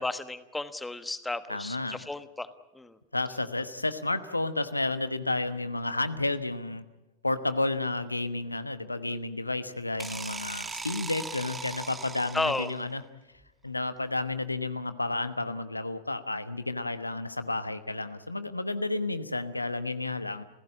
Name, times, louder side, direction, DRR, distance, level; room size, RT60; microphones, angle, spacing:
voice 1, 0.0-2.5 2.7-3.0 12.3-12.7, left 2 dB, 5° left, 12 dB, 1.3 m, -33 dB
voice 2, 1.5-2.0 3.1-6.9 7.2-13.0 13.6-20.4, left 2 dB, 85° left, 12 dB, 1.1 m, -31 dB
sound 1, 10.0-12.9, right 4 dB, 15° right, 1.7 m, -39 dB
29.5 x 16.0 x 8.8 m, 1.1 s
figure-of-eight pair, 90°, 0 cm